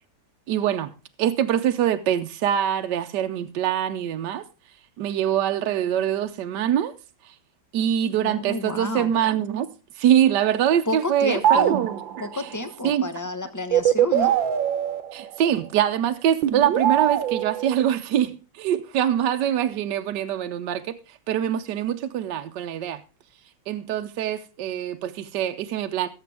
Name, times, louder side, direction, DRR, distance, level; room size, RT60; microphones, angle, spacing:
voice 1, 0.5-0.9 1.2-4.4 5.0-6.9 7.2-7.3 7.7-9.7 10.0-12.5 12.8-13.1 15.1-23.0 23.7-26.1, right 10 dB, 70° right, 1.3 m, -24 dB
voice 2, 8.2-9.1 10.9-11.8 12.2-14.3, left 2 dB, 15° left, 0.7 m, -30 dB
sound 1, 11.4-12.3 13.7-15.7 16.4-17.7, right 10 dB, 90° right, 1.7 m, -22 dB
17.5 x 7.7 x 3.4 m
omnidirectional pair, 2.0 m